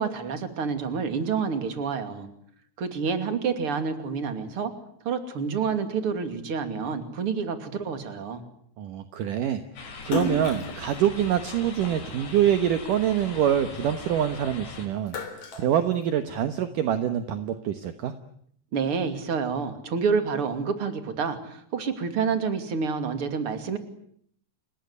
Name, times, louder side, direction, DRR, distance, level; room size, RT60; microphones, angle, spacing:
voice 1, 0.0-2.3 2.8-4.7 5.0-8.4 18.7-23.8, right 5 dB, 35° right, 8 dB, 2.8 m, -28 dB
voice 2, 8.8-9.6 10.1-18.1, right 10 dB, 65° right, 9 dB, 2.2 m, -25 dB
sound 1, 9.8-14.9, left 4 dB, 75° left, 7.2 m, -40 dB
Splash splatter, 10.0-12.6 13.0-14.5 14.8-16.6, left 2 dB, 40° left, 4.4 m, -33 dB
29.5 x 19.0 x 9.7 m, 0.67 s
omnidirectional pair, 5.2 m